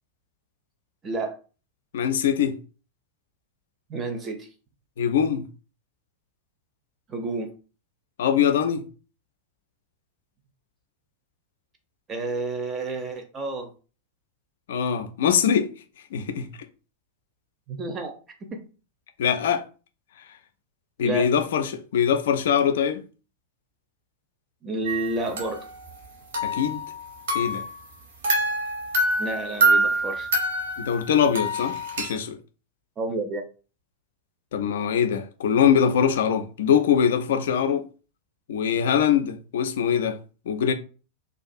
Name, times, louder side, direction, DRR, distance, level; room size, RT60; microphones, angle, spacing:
voice 1, 1.0-1.4 3.9-4.5 7.1-7.5 12.1-13.7 17.7-18.7 21.0-21.3 24.6-25.6 29.2-30.3 33.0-33.4, right 2 dB, 25° right, 0.5 m, -30 dB
voice 2, 1.9-2.6 5.0-5.5 8.2-8.9 14.7-15.7 16.1-16.5 19.2-19.6 21.0-23.0 26.4-26.8 27.3-27.6 30.8-32.4 34.5-37.9 38.5-40.2 40.5-40.7, left 8 dB, 60° left, 0.3 m, -22 dB
sound 1, 24.9-26.1 26.3-27.8 28.2-32.2, right 1 dB, 60° right, 0.7 m, -26 dB
2.3 x 2.3 x 2.5 m
figure-of-eight pair, 90°, 0 cm